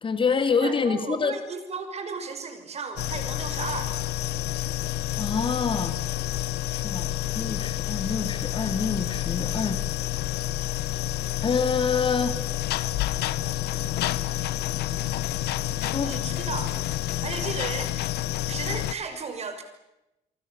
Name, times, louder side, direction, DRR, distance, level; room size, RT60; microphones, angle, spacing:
voice 1, 0.0-1.4 5.2-6.0 6.7-9.8 11.4-12.4 15.9-16.1, left 5 dB, 30° left, 9 dB, 2.4 m, -26 dB
voice 2, 0.6-4.0 15.8-17.9 18.5-19.6, right 5 dB, 40° right, 8 dB, 5.8 m, -35 dB
sound 1, 3.0-18.9, left 14 dB, 75° left, 1.1 m, -29 dB
28.0 x 24.0 x 7.1 m, 0.90 s
cardioid pair, 110°, 17 cm